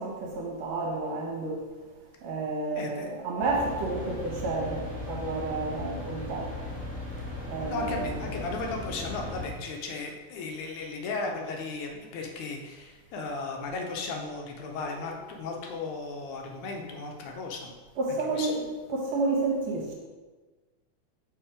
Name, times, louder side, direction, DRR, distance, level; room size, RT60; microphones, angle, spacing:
voice 1, 0.0-1.6 2.2-6.5 7.5-8.3 18.0-18.6 18.9-19.9, right 3 dB, 65° right, -1 dB, 2.0 m, -30 dB
voice 2, 2.7-3.1 7.6-17.7 18.3-18.5, left 3 dB, 75° left, 2 dB, 2.1 m, -35 dB
sound 1, 3.4-9.5, left 2 dB, 5° left, 1.0 m, -37 dB
5.9 x 4.6 x 4.9 m, 1.3 s
omnidirectional pair, 3.6 m